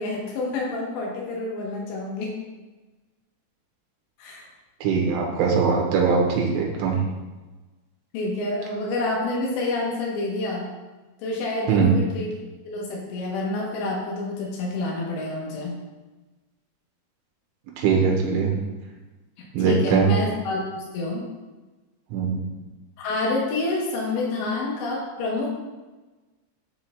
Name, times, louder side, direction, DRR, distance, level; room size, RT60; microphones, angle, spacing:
voice 1, 0.0-2.3 4.2-4.4 8.1-10.7 11.2-12.3 12.6-15.8 19.6-21.3 23.0-25.5, left 2 dB, 75° left, -2 dB, 3.3 m, -28 dB
voice 2, 4.8-7.0 11.7-12.0 17.8-18.5 19.6-20.1 22.1-22.4, right 5 dB, 90° right, -1 dB, 3.6 m, -21 dB
11.5 x 4.5 x 2.4 m, 1.2 s
omnidirectional pair, 5.3 m